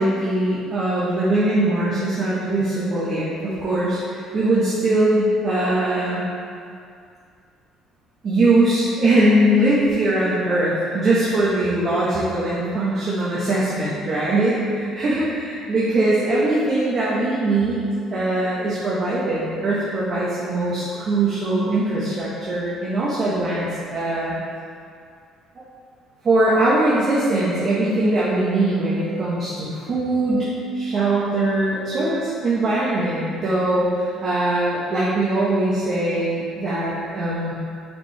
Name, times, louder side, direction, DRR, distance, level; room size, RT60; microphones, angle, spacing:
voice 1, 0.0-6.3 8.2-24.4 26.2-37.5, right 1 dB, 45° right, -8 dB, 1.2 m, -21 dB
5.9 x 4.8 x 3.3 m, 2.3 s
cardioid pair, 105°, 0 cm